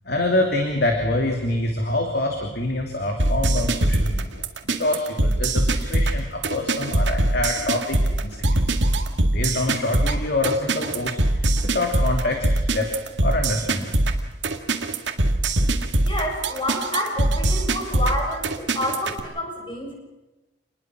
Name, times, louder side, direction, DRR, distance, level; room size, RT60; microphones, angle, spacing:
voice 1, 0.0-8.4 8.7-8.8 9.3-11.5 11.7-12.9 13.2-13.9, left 2 dB, 55° left, 2 dB, 2.9 m, -25 dB
sound 1, 3.2-19.2, right 2 dB, 75° right, 2.1 m, -22 dB
voice 2, 16.0-19.9, left 1 dB, 25° left, 0 dB, 7.2 m, -28 dB
28.0 x 20.5 x 6.4 m, 1.0 s
head